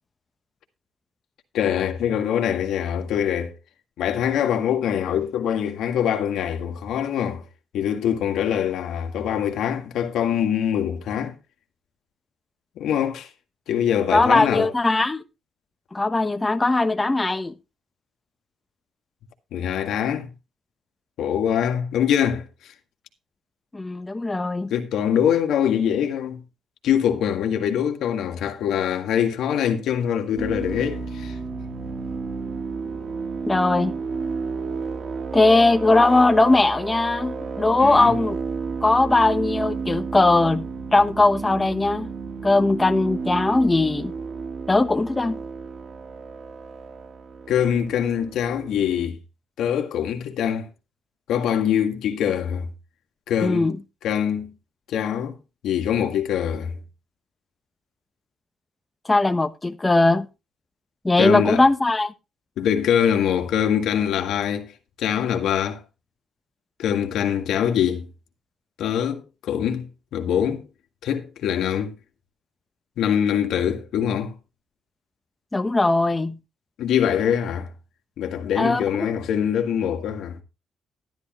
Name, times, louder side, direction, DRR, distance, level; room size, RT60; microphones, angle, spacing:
voice 1, 1.5-3.5 4.0-7.4 7.7-11.4 12.8-13.3 13.7-14.7 19.5-20.3 21.2-22.7 24.7-26.4 26.8-31.4 37.8-38.1 47.5-49.2 49.6-50.7 51.3-52.7 53.3-53.7 54.0-54.5 54.9-55.4 55.6-56.7 61.2-61.6 62.6-64.7 65.0-65.8 66.8-68.1 68.8-70.7 71.0-71.9 73.0-74.3 76.8-77.7 78.2-80.4, left 9 dB, 80° left, 1.8 m, -23 dB
voice 2, 14.1-15.2 15.9-17.5 23.7-24.7 33.4-33.9 35.3-38.4 38.8-40.6 40.9-42.1 42.4-44.1 44.7-45.4 53.4-53.8 59.1-60.3 61.0-62.1 75.5-76.3 78.6-79.1, left 2 dB, 20° left, 1.0 m, -19 dB
sound 1, 30.4-49.1, right 4 dB, 55° right, 2.3 m, -32 dB
12.0 x 11.5 x 3.1 m
cardioid pair, 90°, 0 cm